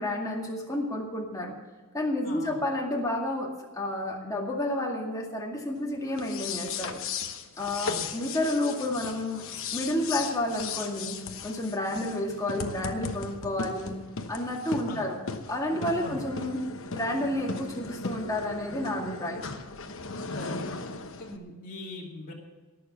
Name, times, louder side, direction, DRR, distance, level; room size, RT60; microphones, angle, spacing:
voice 1, 0.0-1.5 1.9-7.0 7.6-9.4 9.7-11.2 11.4-13.9 14.3-15.2 15.5-16.6 16.9-19.4, left 1 dB, 15° left, 0 dB, 2.1 m, -30 dB
voice 2, 2.2-2.6 7.9-8.1 14.9-15.0 16.0-16.2 20.3-20.7 21.1-22.3, left 2 dB, 40° left, -3 dB, 2.5 m, -41 dB
sound 1, 6.1-21.4, left 4 dB, 60° left, 1.1 m, -37 dB
18.5 x 7.0 x 7.1 m, 1.3 s
head